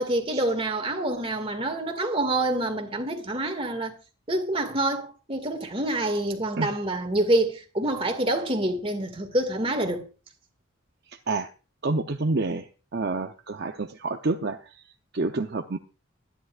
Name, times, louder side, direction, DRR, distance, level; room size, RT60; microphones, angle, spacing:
voice 1, 0.0-3.9 4.3-10.1, right 1 dB, 25° right, 2.0 m, -27 dB
voice 2, 11.8-12.7 12.9-14.6 15.1-15.8, right 3 dB, 50° right, 0.7 m, -28 dB
24.5 x 10.5 x 2.5 m
head